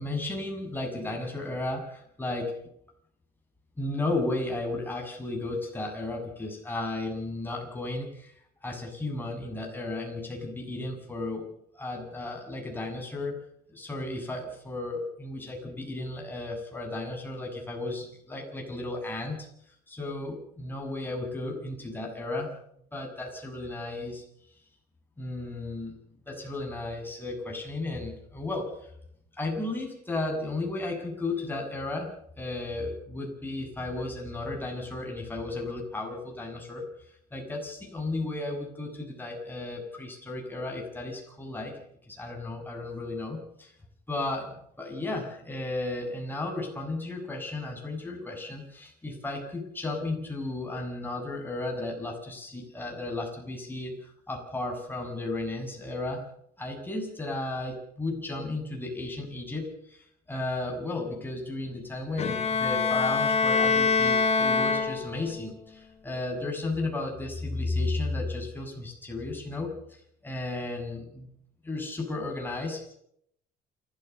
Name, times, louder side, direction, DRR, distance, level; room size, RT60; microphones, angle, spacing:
voice 1, 0.0-2.5 3.8-8.3 8.6-11.5 11.7-13.4 13.7-19.5 19.9-22.5 22.9-24.2 25.2-25.9 26.3-28.9 29.4-32.1 32.4-43.7 44.1-56.2 56.6-71.3 71.6-72.9, left 2 dB, 10° left, 1 dB, 7.2 m, -34 dB
Bowed string instrument, 62.2-65.4, left 4 dB, 40° left, 3.0 m, -24 dB
28.5 x 14.0 x 6.8 m, 0.71 s
cardioid pair, 110°, 17 cm